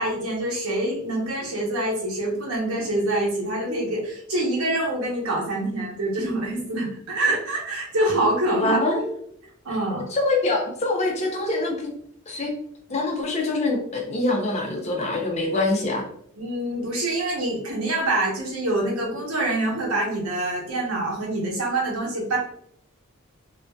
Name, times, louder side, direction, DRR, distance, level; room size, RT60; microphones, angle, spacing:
voice 1, 0.0-8.8 9.6-10.0 16.4-22.4, right 1 dB, 90° right, -3 dB, 0.9 m, -25 dB
voice 2, 8.6-9.1 9.9-11.9 12.3-12.5 12.9-16.0, left 2 dB, 30° left, 1 dB, 0.5 m, -24 dB
2.5 x 2.2 x 2.2 m, 0.65 s
head